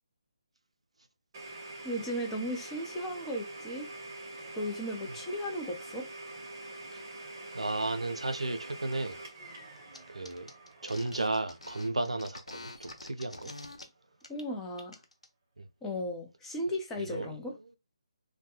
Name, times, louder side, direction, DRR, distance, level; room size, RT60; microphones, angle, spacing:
Domestic sounds home sounds, 1.3-13.0, right 2 dB, 35° right, 0.8 m, -46 dB
voice 1, 1.8-3.9 4.5-6.1 14.3-14.9 15.8-17.5, equal, 10° left, 0.6 m, -35 dB
voice 2, 7.5-9.2 10.1-10.5 10.8-13.5 15.6-15.7 17.0-17.3, right 2 dB, 85° right, 0.4 m, -34 dB
sound 1, 9.9-10.0 10.2-13.8 14.2-14.4 14.7-15.3, left 2 dB, 90° left, 0.6 m, -46 dB
2.2 x 2.1 x 2.9 m
figure-of-eight pair, 150°, 3 cm